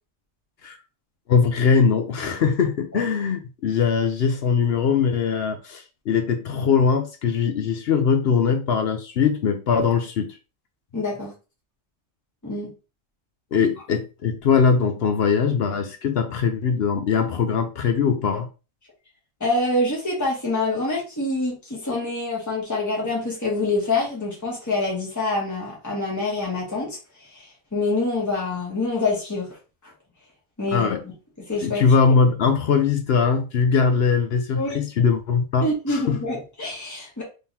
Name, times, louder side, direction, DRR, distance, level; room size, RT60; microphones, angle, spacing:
voice 1, 1.3-10.3 13.5-18.5 30.7-31.0 31.6-36.2, left 6 dB, 60° left, 0.7 m, -21 dB
voice 2, 10.9-11.3 12.4-12.7 19.4-27.0 27.3-27.4 27.7-29.5 30.6-30.9 31.5-31.8 34.5-34.8 35.6-37.2, left 2 dB, 15° left, 1.5 m, -26 dB
3.6 x 3.4 x 2.8 m
omnidirectional pair, 1.4 m